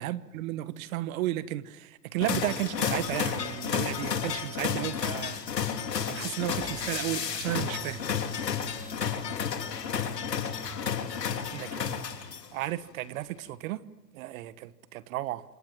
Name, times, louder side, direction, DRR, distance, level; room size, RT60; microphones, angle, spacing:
voice 1, 0.0-5.3 6.1-8.0 11.5-12.0 12.5-13.8 14.1-15.4, right 15 dB, 60° right, 1.5 m, -33 dB
sound 1, 2.2-12.6, left 7 dB, 90° left, 3.2 m, -32 dB
sound 2, 6.6-11.9, right 3 dB, 20° right, 3.9 m, -48 dB
29.0 x 26.5 x 7.6 m
hypercardioid pair, 110°, 48 cm